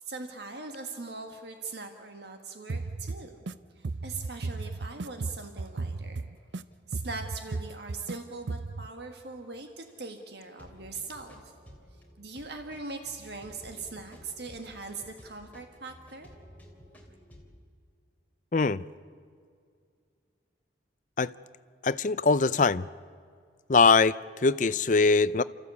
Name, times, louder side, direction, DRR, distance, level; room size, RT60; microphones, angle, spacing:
voice 1, 0.0-3.3 3.7-6.3 6.9-11.5 12.2-16.3, right 3 dB, 60° right, 5 dB, 1.7 m, -41 dB
sound 1, 2.1-2.9 3.2-3.3 3.9-4.0 4.2-4.3 4.8-5.7 6.4-6.7 7.0-7.1 7.8-8.2 8.5-8.6 8.8-8.9 9.5-9.6 9.9-10.0 10.4-17.5, equal, 10° left, 3.1 m, -54 dB
sound 2, 2.7-3.5 3.8-6.6 6.9-8.2 8.5-8.9, right 3 dB, 75° right, 0.6 m, -35 dB
voice 2, 18.5-18.8 21.2-21.3 21.8-22.8 23.7-24.1 24.4-25.4, left 4 dB, 45° left, 17 dB, 0.5 m, -22 dB
30.0 x 14.5 x 8.4 m, 2.2 s
head